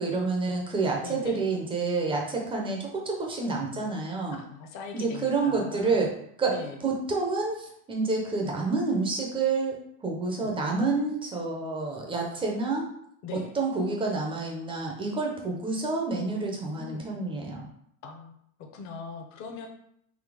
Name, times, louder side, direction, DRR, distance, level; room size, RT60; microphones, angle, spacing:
voice 1, 0.0-4.4 4.9-6.1 6.4-6.5 6.8-9.8 10.0-12.9 13.3-17.7, right 3 dB, 10° right, 0 dB, 0.5 m, -28 dB
voice 2, 1.0-1.4 4.3-6.0 6.5-6.8 10.3-10.5 13.2-13.5 16.7-17.1 18.0-19.7, left 5 dB, 35° left, 3 dB, 0.8 m, -41 dB
4.1 x 2.7 x 4.7 m, 0.71 s
supercardioid pair, 140°, 49 cm